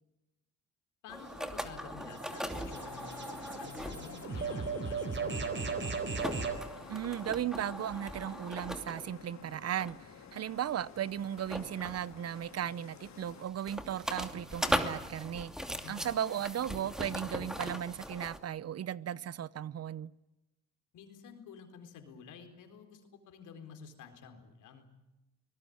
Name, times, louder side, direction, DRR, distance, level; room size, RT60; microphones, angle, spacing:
voice 1, 1.0-5.7 15.8-16.4 20.9-24.9, left 6 dB, 80° left, 4.3 m, -50 dB
sound 1, 1.1-4.3 4.8-4.9 5.4-9.2 9.8-10.1 11.4-12.5 13.1-18.4, equal, ahead, 2.7 m, -39 dB
sound 2, 1.2-6.6, right 5 dB, 40° right, 3.9 m, -38 dB
sound 3, 2.5-13.5, left 7 dB, 65° left, 3.9 m, -51 dB
voice 2, 6.9-15.5 15.9-20.1, right 10 dB, 55° right, 0.8 m, -36 dB
24.0 x 19.5 x 9.5 m
cardioid pair, 90°, 30 cm